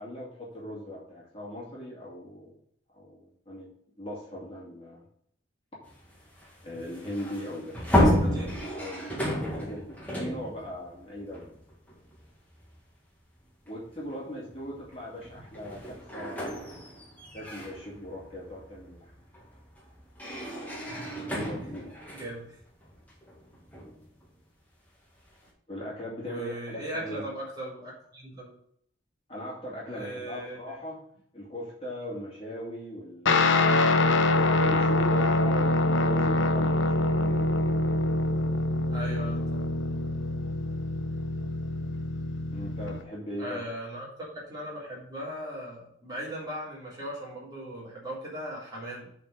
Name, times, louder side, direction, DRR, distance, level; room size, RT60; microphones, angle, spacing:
voice 1, 0.0-2.5 2.9-3.7 4.0-5.0 6.6-8.4 8.7-11.5 13.7-16.5 17.3-19.1 20.8-21.9 25.7-27.2 29.3-31.0 31.3-33.7 34.3-37.5 42.5-43.6, equal, 30° left, -5 dB, 2.3 m, -39 dB
sound 1, 5.8-12.2 12.6-12.8 13.9-14.1 14.5-24.3, left 1 dB, 10° left, 1.8 m, -32 dB
voice 2, 7.9-8.5 22.1-22.6 26.2-28.5 29.9-30.8 38.9-39.8 43.4-44.1 44.3-49.1, right 1 dB, 20° right, -7 dB, 3.6 m, -38 dB
Guitar, 33.3-43.0, left 2 dB, 80° left, 0.8 m, -25 dB
7.7 x 4.3 x 6.6 m, 0.66 s
head